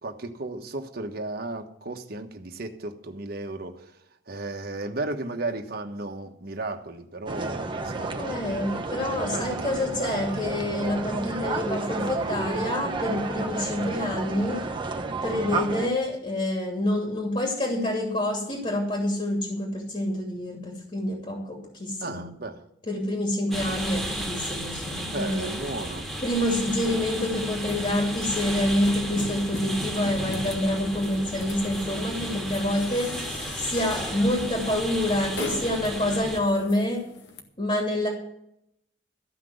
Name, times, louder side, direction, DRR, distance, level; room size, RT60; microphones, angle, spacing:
voice 1, 0.0-3.9 4.3-8.4 9.3-9.9 22.0-22.6 25.1-26.1, right 2 dB, 60° right, 1.3 m, -35 dB
sound 1, 7.3-15.9, right 3 dB, 30° right, 1.1 m, -31 dB
voice 2, 8.2-14.7 15.2-22.3 22.9-25.5 26.2-33.3 33.6-37.0 37.6-38.1, left 1 dB, 35° left, 2.9 m, -27 dB
sound 2, 23.5-36.4, right 1 dB, 5° left, 2.0 m, -34 dB
sound 3, 27.6-37.4, left 1 dB, 75° left, 1.8 m, -41 dB
14.0 x 6.0 x 9.4 m
head